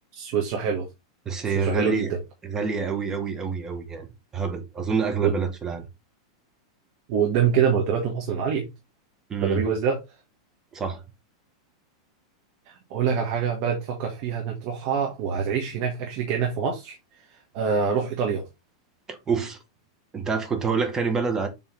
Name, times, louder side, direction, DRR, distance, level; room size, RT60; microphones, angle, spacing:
voice 1, 0.2-0.9 1.5-2.2 5.2-5.4 7.1-8.7 9.4-10.0 12.7-17.0 17.3-18.5, right 7 dB, 50° right, 1.8 m, -25 dB
voice 2, 1.2-2.1 2.4-4.1 4.3-5.9 9.3-9.7 10.7-11.0 19.1-19.6 20.1-21.5, right 5 dB, 15° right, 1.5 m, -27 dB
7.5 x 3.7 x 3.9 m
supercardioid pair, 140°, 3 cm